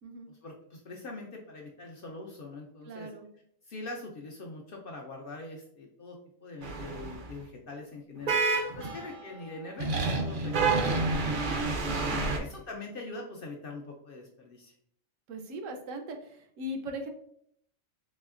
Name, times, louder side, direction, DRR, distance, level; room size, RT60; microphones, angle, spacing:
voice 1, 0.4-3.1 3.6-11.8 12.4-14.7, left 2 dB, 60° left, 0 dB, 0.6 m, -43 dB
voice 2, 2.8-3.3 8.8-9.1 12.1-12.3 15.3-17.1, equal, 80° right, 4 dB, 1.0 m, -39 dB
sound 1, 6.6-7.3 8.3-9.2 9.8-12.4, right 3 dB, 55° right, 0.6 m, -29 dB
4.1 x 3.0 x 2.4 m, 0.67 s
omnidirectional pair, 1.3 m